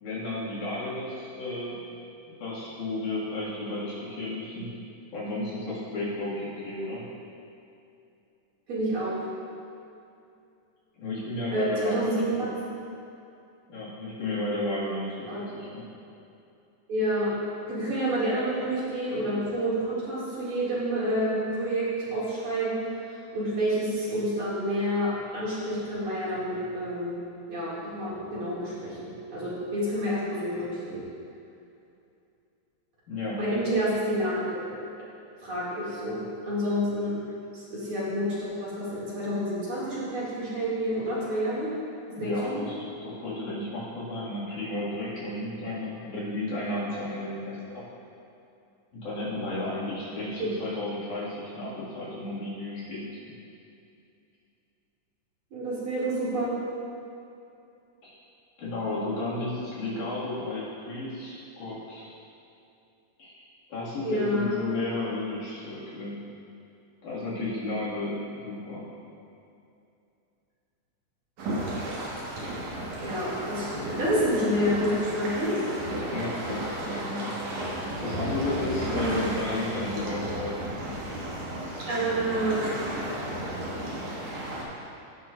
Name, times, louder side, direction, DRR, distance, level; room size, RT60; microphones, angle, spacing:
voice 1, 0.0-1.8 2.3-4.7 5.1-7.0 11.0-12.5 13.7-15.9 33.1-33.4 42.2-47.8 48.9-53.0 58.0-58.2 58.6-62.1 63.2-63.4 63.7-66.2 67.0-68.9 76.1-77.4 78.0-81.0, left 2 dB, 75° left, -10 dB, 3.7 m, -33 dB
voice 2, 8.7-9.2 11.5-12.5 15.3-15.4 16.9-17.3 17.7-22.8 23.3-27.2 27.5-31.0 33.4-34.6 35.4-37.2 37.5-41.7 42.2-42.6 50.4-50.5 55.5-56.6 64.0-64.5 73.0-75.5 78.8-79.1 81.9-82.9, equal, 45° right, -9 dB, 3.1 m, -28 dB
sound 1, 71.4-84.6, right 1 dB, 75° right, 3.1 m, -33 dB
16.5 x 6.2 x 2.5 m, 2.6 s
omnidirectional pair, 3.5 m